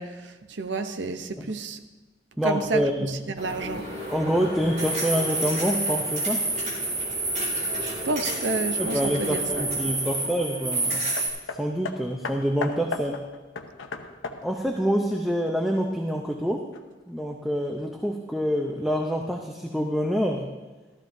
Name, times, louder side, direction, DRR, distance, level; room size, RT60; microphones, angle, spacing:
voice 1, 0.0-1.8 2.4-3.9 7.8-9.4, right 3 dB, 65° right, 8 dB, 0.8 m, -30 dB
voice 2, 2.4-3.2 4.1-6.5 8.8-11.1 11.6-13.3 14.4-16.7 17.1-20.5, equal, ahead, 1 dB, 0.6 m, -26 dB
sound 1, 3.4-11.3, right 2 dB, 35° right, 2.9 m, -29 dB
Hammer, 11.2-15.9 16.7-16.8, left 4 dB, 80° left, 0.8 m, -36 dB
15.0 x 13.5 x 2.7 m, 1.2 s
head